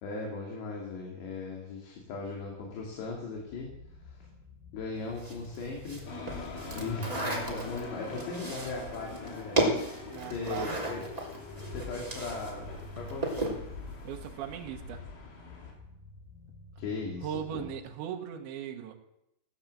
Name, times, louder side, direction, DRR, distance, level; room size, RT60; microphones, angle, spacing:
voice 1, 0.0-3.7 4.0-4.3 4.7-6.1 6.7-11.0 11.7-13.6 16.8-17.7, left 3 dB, 65° left, -1 dB, 4.2 m, -38 dB
sound 1, 1.9-17.7, equal, 50° left, 6.1 m, -50 dB
sound 2, 5.2-12.5 12.8-13.6, right 2 dB, 10° right, 2.2 m, -34 dB
sound 3, 6.1-15.7, left 4 dB, 80° left, 5.5 m, -43 dB
voice 2, 10.0-10.8 14.1-15.0 17.2-18.9, right 9 dB, 75° right, 2 dB, 3.5 m, -38 dB
17.0 x 10.5 x 7.5 m, 0.84 s
omnidirectional pair, 5.5 m